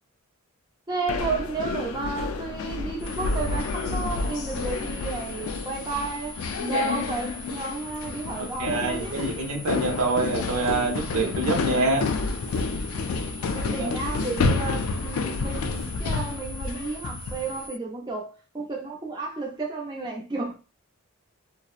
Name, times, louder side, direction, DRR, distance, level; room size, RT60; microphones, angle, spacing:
voice 1, 0.9-9.3 13.5-20.6, right 3 dB, 20° right, 0.5 m, -32 dB
sound 1, 1.1-17.6, left 4 dB, 75° left, 0.3 m, -30 dB
sound 2, 3.0-17.8, equal, 50° left, 0.7 m, -43 dB
voice 2, 8.4-12.1 13.8-13.9, right 3 dB, 80° right, 0.7 m, -26 dB
2.7 x 2.0 x 2.3 m
head